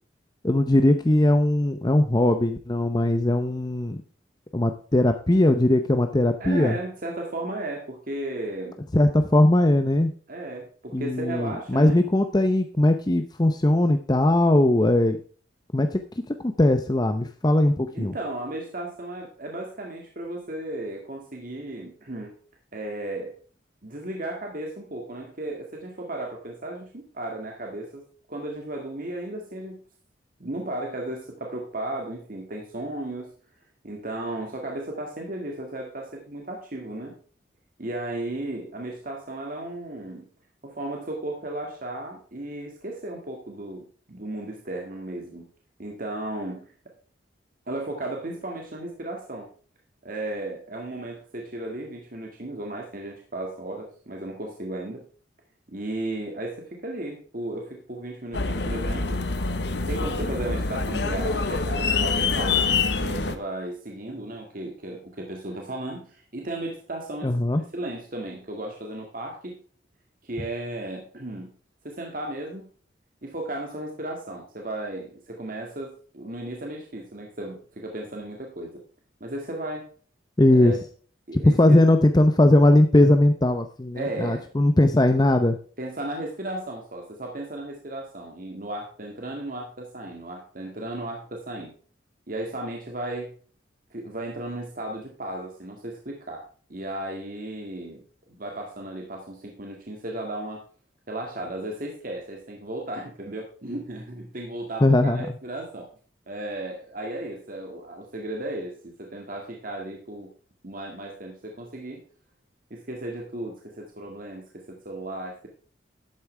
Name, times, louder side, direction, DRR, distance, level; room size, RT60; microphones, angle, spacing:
voice 1, 0.4-4.0 4.5-6.8 8.9-10.1 10.9-15.2 15.7-16.0 16.3-18.1 67.2-67.6 80.4-80.8 81.3-85.6 104.8-105.3, left 1 dB, 20° left, 8 dB, 0.7 m, -20 dB
voice 2, 6.4-8.8 10.3-12.0 17.9-22.3 22.7-23.4 23.8-29.8 30.4-33.3 33.8-37.2 37.8-40.3 40.6-43.8 44.1-45.5 45.8-46.7 47.7-49.5 50.0-55.0 55.7-59.2 59.9-69.6 70.2-71.5 71.8-72.7 73.2-78.8 79.2-79.9 80.5-80.8 81.3-81.8 83.9-84.5 85.8-91.7 92.3-93.3 93.9-96.4 96.7-98.0 98.3-100.6 101.1-105.9 106.3-110.3 110.6-112.0 112.7-115.5, right 1 dB, 50° right, 1 dB, 2.0 m, -35 dB
sound 1, 58.3-63.4, left 4 dB, 65° left, 1.1 m, -25 dB
12.0 x 8.5 x 3.4 m, 0.42 s
head